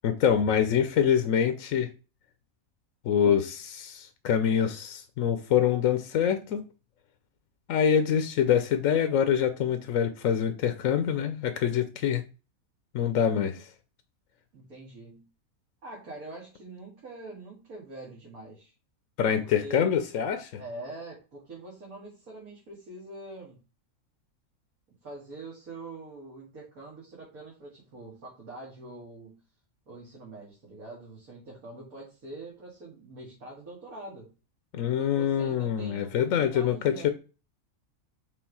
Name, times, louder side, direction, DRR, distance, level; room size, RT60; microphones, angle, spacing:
voice 1, 0.0-1.9 3.0-6.6 7.7-12.2 12.9-13.7 19.2-20.5 34.7-37.1, left 8 dB, 70° left, 1.0 m, -25 dB
voice 2, 14.5-15.3 15.8-18.7 19.4-19.9 20.6-23.6 25.0-29.4 29.9-34.3 34.8-37.1, right 2 dB, 80° right, 2.5 m, -44 dB
6.2 x 3.6 x 4.6 m
omnidirectional pair, 1.5 m